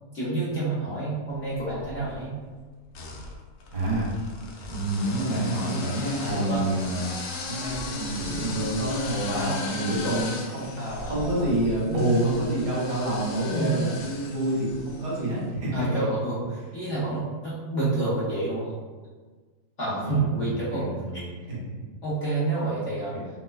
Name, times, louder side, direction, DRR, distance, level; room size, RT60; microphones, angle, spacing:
voice 1, 0.1-2.3 6.2-6.6 7.7-7.8 9.1-9.6 10.8-11.5 13.4-13.7 15.7-18.7 19.8-20.9 22.0-23.1, right 2 dB, 55° left, -9 dB, 0.9 m, -29 dB
sound 1, 1.5-2.2 2.9-15.2, left 3 dB, 90° left, 1.3 m, -37 dB
voice 2, 3.7-4.1 4.7-7.1 7.5-10.7 11.1-15.7 19.8-21.6 22.6-22.7 23.1-23.2, right 1 dB, 65° right, -7 dB, 2.2 m, -28 dB
5.3 x 2.1 x 2.4 m, 1.4 s
omnidirectional pair, 1.9 m